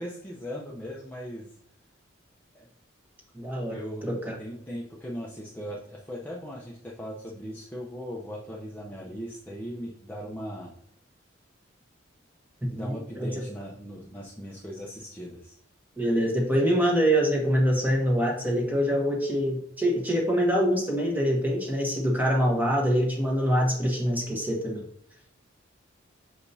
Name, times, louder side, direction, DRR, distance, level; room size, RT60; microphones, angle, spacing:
voice 1, 0.0-1.5 2.5-2.7 3.7-4.0 4.4-10.7 12.7-15.5, equal, 10° left, -5 dB, 0.7 m, -38 dB
voice 2, 3.3-4.3 12.6-13.4 16.0-24.8, equal, 10° right, -2 dB, 1.4 m, -25 dB
6.7 x 5.1 x 2.7 m, 0.69 s
head